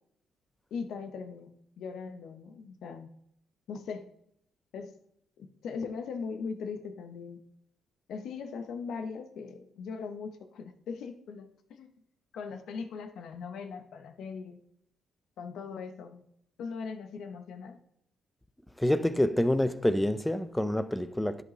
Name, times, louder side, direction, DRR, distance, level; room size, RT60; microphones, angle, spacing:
voice 1, 0.7-3.1 3.7-4.1 4.7-4.9 5.4-7.4 8.1-11.9 12.3-14.6 15.4-16.2 16.6-17.8, left 5 dB, 75° left, 0.9 m, -39 dB
voice 2, 18.8-21.4, left 1 dB, 5° left, 0.4 m, -27 dB
11.0 x 5.2 x 3.2 m
cardioid pair, 90°, 0 cm